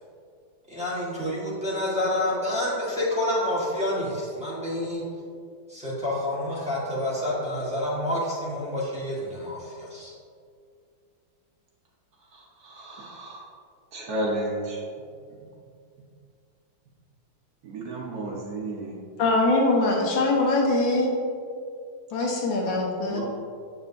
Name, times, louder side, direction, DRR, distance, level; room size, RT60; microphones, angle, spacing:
voice 1, 0.7-5.1 5.7-10.1, left 1 dB, 5° right, -8 dB, 1.2 m, -28 dB
voice 2, 12.6-13.5 13.9-14.8 17.6-18.9 23.1-23.2, right 1 dB, 60° right, -3 dB, 1.4 m, -32 dB
voice 3, 19.2-21.1 22.1-23.2, left 2 dB, 85° left, -1 dB, 1.7 m, -22 dB
7.9 x 5.5 x 2.6 m, 2.3 s
omnidirectional pair, 2.0 m